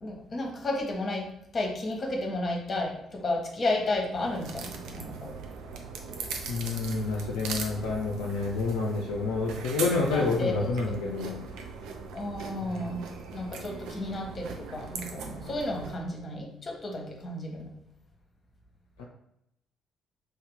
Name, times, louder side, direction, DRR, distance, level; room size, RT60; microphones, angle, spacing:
voice 1, 0.0-1.2 1.5-5.3 10.1-10.6 12.1-13.0 13.3-17.7, left 2 dB, 35° left, 0 dB, 1.0 m, -32 dB
sound 1, 4.1-16.0, right 5 dB, 60° right, 0.4 m, -40 dB
voice 2, 6.5-11.4 12.6-12.9 19.0-19.1, left 3 dB, 70° left, -2 dB, 0.4 m, -29 dB
3.3 x 2.8 x 3.5 m, 0.80 s
figure-of-eight pair, 45°, 0 cm